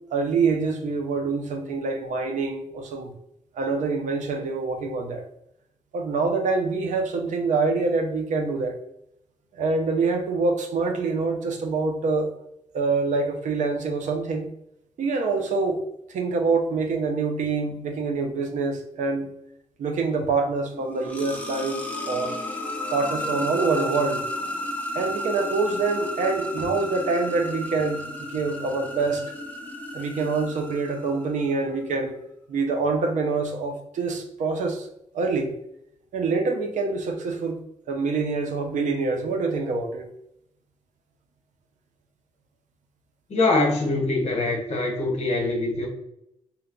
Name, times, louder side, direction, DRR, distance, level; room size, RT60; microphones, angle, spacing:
voice 1, 0.1-3.1 3.5-5.3 5.9-8.8 9.5-12.3 12.7-14.5 15.0-15.8 16.1-19.3 19.8-22.3 22.9-24.2 24.9-29.3 29.9-32.2 32.5-34.9 35.1-35.5 36.1-37.6 37.9-40.1, right 4 dB, 85° right, 0.5 m, -25 dB
sound 1, 20.7-31.5, left 1 dB, 10° left, 0.4 m, -33 dB
voice 2, 43.3-45.9, left 2 dB, 60° left, 1.0 m, -23 dB
2.8 x 2.2 x 3.7 m
wide cardioid pair, 165°, 12 cm